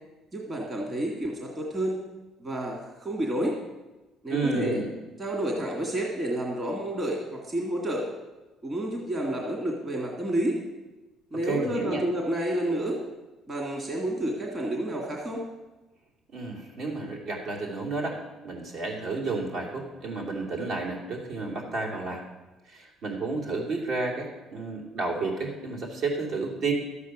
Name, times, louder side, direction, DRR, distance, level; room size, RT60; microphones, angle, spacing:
voice 1, 0.3-2.0 2.4-3.6 4.2-4.8 5.2-8.1 8.6-10.6 11.3-13.0 13.5-15.4, right 1 dB, 25° right, -1 dB, 2.1 m, -30 dB
voice 2, 4.3-4.9 11.4-12.0 16.3-18.2 18.4-22.2 22.6-26.7, right 3 dB, 60° right, -1 dB, 3.0 m, -31 dB
12.5 x 8.3 x 6.1 m, 1.1 s
cardioid pair, 105°, 0 cm